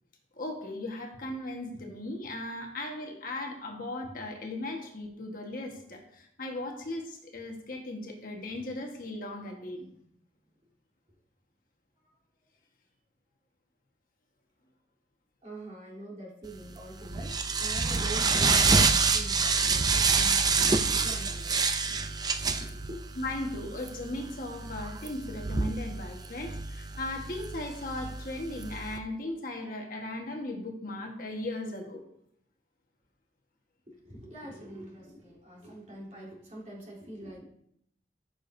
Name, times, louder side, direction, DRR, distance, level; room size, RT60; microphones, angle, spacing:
voice 1, 0.4-9.9 23.2-32.0, left 1 dB, 50° left, 1 dB, 1.4 m, -37 dB
voice 2, 15.4-21.6 22.6-22.9 33.9-37.4, right 1 dB, 40° right, -5 dB, 3.4 m, -45 dB
sound 1, 16.6-29.0, right 4 dB, 20° right, 0.5 m, -28 dB
14.0 x 6.9 x 2.7 m, 0.72 s
head